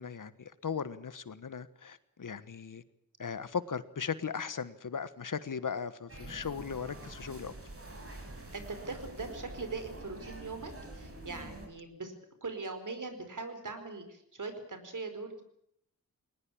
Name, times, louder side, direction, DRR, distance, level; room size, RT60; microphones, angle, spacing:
voice 1, 0.0-2.8 3.2-7.5, left 6 dB, 60° left, 15 dB, 1.3 m, -38 dB
sound 1, 6.1-11.7, right 2 dB, 40° right, 5.8 m, -46 dB
voice 2, 8.5-12.1 12.4-15.4, right 3 dB, 60° right, 9 dB, 4.7 m, -41 dB
20.5 x 19.5 x 8.7 m, 0.73 s
wide cardioid pair, 75°, 35 cm